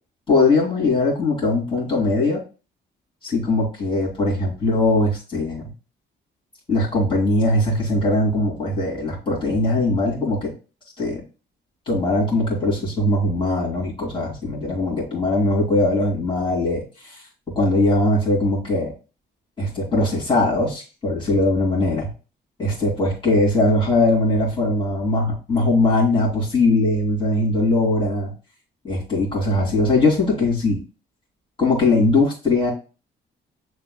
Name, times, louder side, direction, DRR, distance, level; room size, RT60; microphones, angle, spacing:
voice 1, 0.3-2.4 3.2-5.6 6.7-10.5 11.0-11.2 11.9-17.2 17.5-18.9 19.6-22.1 22.6-28.3 28.8-30.8 31.6-32.7, left 2 dB, 25° left, -5 dB, 2.5 m, -20 dB
6.7 x 3.3 x 2.2 m, 0.33 s
cardioid pair, 90°, 20 cm